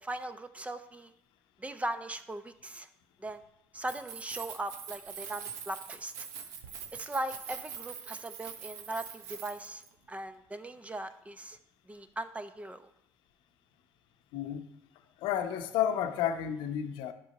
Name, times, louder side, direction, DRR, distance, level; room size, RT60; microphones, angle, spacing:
voice 1, 0.0-1.1 1.6-2.9 3.2-3.4 3.7-6.1 6.9-9.8 10.1-11.6 11.9-12.8, right 1 dB, 15° right, 11 dB, 0.8 m, -39 dB
Keys jangling, 3.7-9.9, right 7 dB, 80° right, 0.9 m, -44 dB
voice 2, 14.3-14.6 15.2-17.1, left 9 dB, 70° left, 8 dB, 0.8 m, -31 dB
11.0 x 5.4 x 4.1 m, 0.76 s
hypercardioid pair, 60°, 9 cm